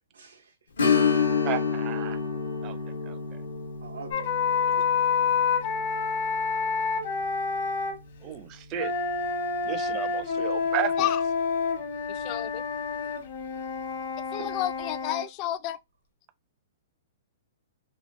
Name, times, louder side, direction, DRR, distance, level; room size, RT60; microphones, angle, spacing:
voice 1, 0.1-0.5 3.8-4.3 4.7-5.5 14.4-14.6, right 5 dB, 85° right, 0.6 m, -46 dB
Strum, 0.8-10.0 10.3-10.4 12.9-13.1 13.6-13.7, left 6 dB, 90° left, 0.8 m, -30 dB
voice 2, 1.4-2.2 2.6-2.8 3.0-3.4 8.2-8.9 9.6-11.1, right 12 dB, 35° right, 0.4 m, -33 dB
sound 1, 4.1-8.0 8.7-15.3, left 5 dB, 60° left, 0.9 m, -28 dB
voice 3, 12.1-12.6 14.3-15.8, left 13 dB, 35° left, 0.3 m, -31 dB
2.8 x 2.3 x 3.0 m
hypercardioid pair, 135°, 0 cm